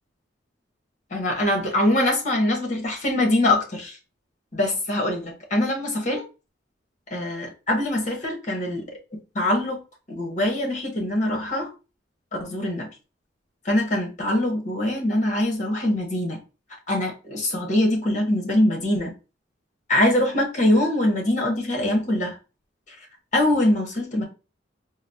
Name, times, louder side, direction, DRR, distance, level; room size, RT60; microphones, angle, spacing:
voice 1, 1.1-4.0 4.5-6.2 7.1-9.8 10.1-11.7 12.4-12.9 13.6-16.4 16.9-19.1 19.9-22.4 23.3-24.2, left 1 dB, 40° left, 1.1 m, -23 dB
3.9 x 2.0 x 2.7 m
head